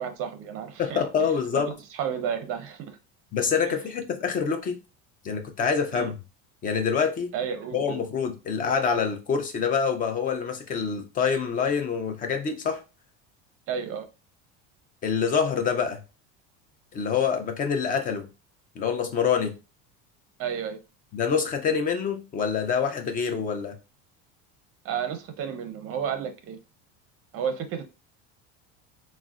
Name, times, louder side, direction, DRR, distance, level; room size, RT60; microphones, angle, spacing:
voice 1, 0.0-1.0 1.5-3.0 3.7-3.8 5.9-6.1 7.3-8.0 13.7-14.1 20.4-20.8 24.8-26.6 27.3-27.9, right 7 dB, 40° right, 0.6 m, -32 dB
voice 2, 0.8-1.7 3.3-4.8 5.2-6.1 6.6-7.3 7.7-12.8 15.0-16.0 16.9-18.3 18.8-19.5 21.1-23.7, left 6 dB, 25° left, 0.4 m, -26 dB
3.6 x 2.1 x 2.4 m
cardioid pair, 140°, 35 cm